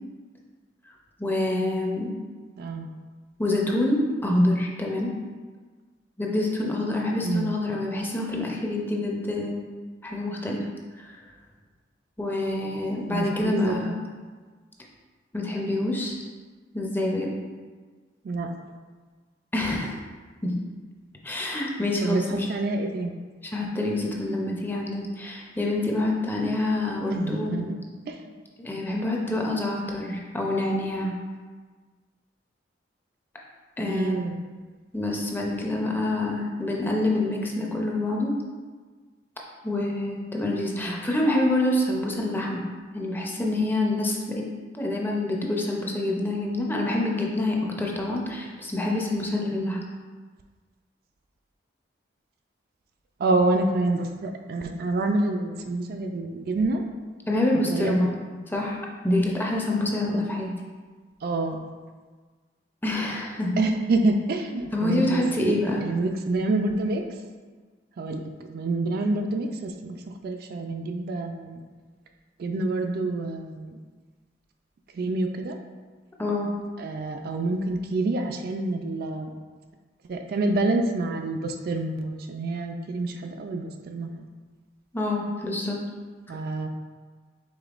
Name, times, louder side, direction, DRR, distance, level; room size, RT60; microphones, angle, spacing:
voice 1, 1.2-2.1 3.4-5.1 6.2-9.6 10.0-10.7 11.0-11.1 12.2-13.9 15.3-16.2 16.7-17.3 19.5-20.0 20.4-20.6 21.2-22.5 23.4-27.7 28.6-31.2 33.8-34.2 34.9-38.3 39.6-42.6 42.9-44.4 44.7-49.8 57.3-58.1 58.5-60.5 62.8-63.6 64.7-65.8 76.2-76.5 84.9-85.8, left 1 dB, 10° left, -1 dB, 0.5 m, -26 dB
voice 2, 2.6-2.9 7.2-7.5 13.1-14.0 18.2-18.5 22.0-23.2 27.1-27.7 28.1-28.3 33.9-34.4 40.8-41.1 53.2-56.8 57.5-58.2 61.2-61.6 63.6-65.5 65.8-67.3 68.0-71.6 72.4-73.8 74.9-75.6 76.8-79.3 80.1-84.2 86.3-86.7, right 2 dB, 55° right, 4 dB, 0.3 m, -27 dB
5.1 x 3.6 x 2.4 m, 1.4 s
head